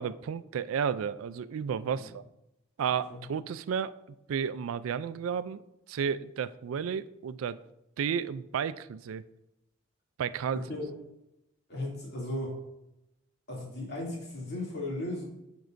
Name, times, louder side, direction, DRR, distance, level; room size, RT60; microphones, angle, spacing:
voice 1, 0.0-2.2 2.8-3.9 4.3-5.6 5.9-7.6 8.0-9.2 10.2-10.6, right 7 dB, 90° right, 15 dB, 0.3 m, -32 dB
voice 2, 10.5-10.9 11.7-12.6 13.5-15.2, left 1 dB, 55° left, -4 dB, 2.5 m, -36 dB
9.3 x 5.3 x 2.6 m, 0.89 s
head